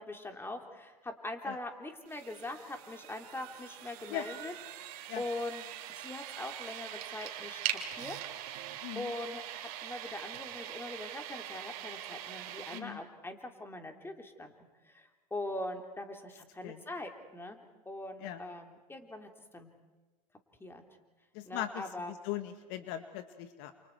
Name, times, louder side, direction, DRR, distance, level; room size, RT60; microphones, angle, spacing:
voice 1, 0.0-5.6 6.0-8.2 8.9-14.5 14.8-17.6 17.8-19.7 20.6-20.8 21.4-22.1, left 2 dB, 10° left, 5 dB, 3.2 m, -42 dB
sound 1, 2.1-12.8, right 12 dB, 65° right, 2.7 m, -42 dB
voice 2, 8.8-9.1 12.7-13.0 16.6-16.8 18.2-18.4 21.3-23.7, left 12 dB, 55° left, 9 dB, 1.6 m, -39 dB
29.0 x 28.5 x 4.7 m, 1.2 s
hypercardioid pair, 95°, 20 cm